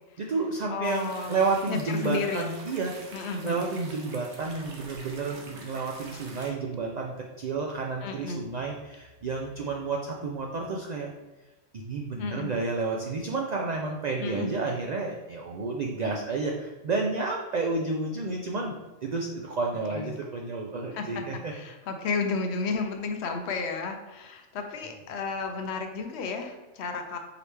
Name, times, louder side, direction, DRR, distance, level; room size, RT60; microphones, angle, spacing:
voice 1, 0.2-3.2 3.4-11.1 11.7-21.5, right 3 dB, 85° right, 0 dB, 0.3 m, -31 dB
voice 2, 0.7-1.4 1.7-2.4 3.1-3.6 8.0-8.4 12.2-12.5 14.2-14.5 19.9-20.1 20.9-27.2, left 4 dB, 70° left, 5 dB, 0.8 m, -32 dB
sound 1, 0.8-6.5, right 3 dB, 65° right, 1.1 m, -46 dB
4.8 x 3.2 x 3.2 m, 1.1 s
omnidirectional pair, 1.3 m